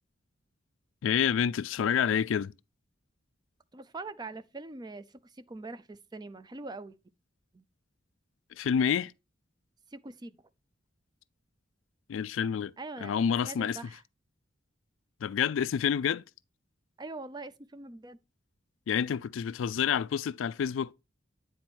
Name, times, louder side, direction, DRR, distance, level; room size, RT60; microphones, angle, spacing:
voice 1, 1.0-2.5 8.6-9.1 12.1-12.7 13.0-13.8 15.2-16.2 18.9-20.9, left 8 dB, 75° left, 0.3 m, -28 dB
voice 2, 3.7-7.0 7.5-7.6 9.9-10.3 12.8-13.2 13.4-14.0 17.0-18.2, right 3 dB, 20° right, 0.5 m, -43 dB
9.1 x 4.2 x 4.4 m
head